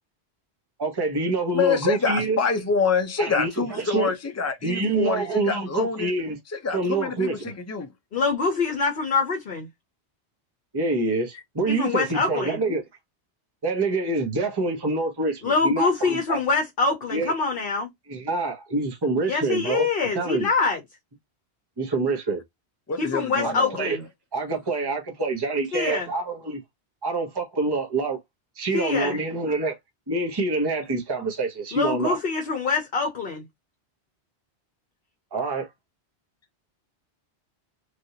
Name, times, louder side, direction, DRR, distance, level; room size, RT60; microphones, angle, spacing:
voice 1, 0.8-2.4 3.2-4.1 4.6-6.4 6.7-7.5 10.7-12.8 13.6-16.4 17.1-17.3 18.1-19.9 20.1-20.5 21.8-22.4 23.4-24.0 24.3-26.6 27.0-28.2 28.6-29.8 30.1-32.2 35.3-35.7, right 3 dB, 20° right, 1.0 m, -26 dB
voice 2, 1.5-6.1 6.5-7.9 22.9-23.8, left 5 dB, 20° left, 0.5 m, -26 dB
voice 3, 8.1-9.7 11.7-12.6 15.4-17.9 19.3-20.8 23.0-24.0 25.7-26.1 28.7-29.2 31.7-33.4, left 4 dB, 55° left, 0.9 m, -25 dB
3.3 x 2.6 x 2.7 m
omnidirectional pair, 1.2 m